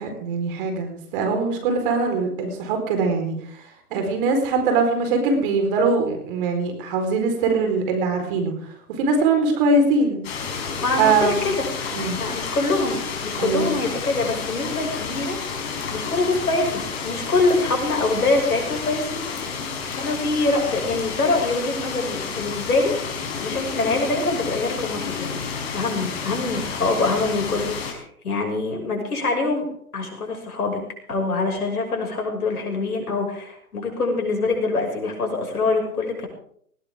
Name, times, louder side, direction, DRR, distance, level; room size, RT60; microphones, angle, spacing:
voice 1, 0.0-3.6 3.9-8.5 8.9-10.2 11.0-11.5 11.9-12.2 13.4-13.7, right 3 dB, 35° right, 5 dB, 4.5 m, -22 dB
sound 1, 10.2-27.9, left 5 dB, 45° left, 4.8 m, -30 dB
voice 2, 10.8-11.7 12.2-15.4 15.9-19.2 19.9-23.0 23.4-25.4 25.7-29.7 29.9-30.8 31.1-36.3, left 3 dB, 75° left, 2 dB, 6.4 m, -24 dB
19.5 x 16.0 x 3.7 m, 0.64 s
hypercardioid pair, 135°, 45 cm